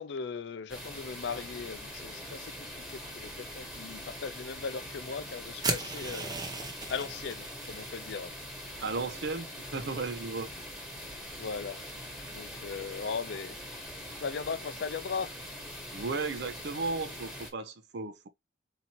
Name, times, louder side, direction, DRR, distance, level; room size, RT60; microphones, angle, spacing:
voice 1, 0.0-6.3 6.9-8.3 11.4-11.8 12.3-13.6 14.2-15.4, left 5 dB, 60° left, 0.4 m, -38 dB
sound 1, 0.7-17.5, equal, ahead, 1.3 m, -43 dB
sound 2, 5.6-7.8, right 3 dB, 20° right, 0.6 m, -35 dB
voice 2, 8.8-10.5 15.9-18.3, right 3 dB, 60° right, 0.6 m, -35 dB
4.2 x 2.8 x 2.9 m
head